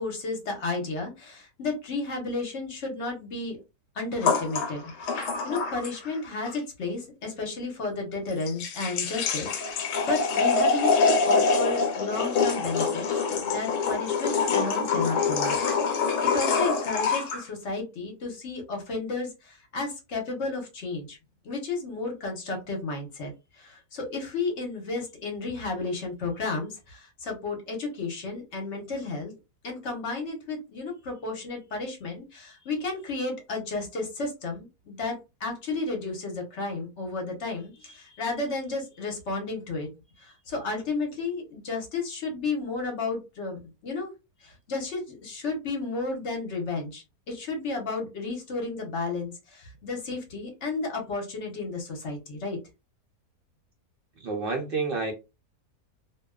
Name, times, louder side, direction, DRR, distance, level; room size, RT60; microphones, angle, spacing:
voice 1, 0.0-3.6 4.0-13.0 13.3-15.6 15.8-21.2 21.4-29.3 29.6-39.9 40.2-44.1 44.4-52.6, left 3 dB, 55° left, 1.0 m, -33 dB
sound 1, 4.2-6.2 6.5-6.6 8.3-17.4, left 4 dB, 80° left, 1.1 m, -25 dB
voice 2, 54.2-55.1, right 4 dB, 65° right, 0.5 m, -29 dB
2.6 x 2.2 x 2.3 m
omnidirectional pair, 1.7 m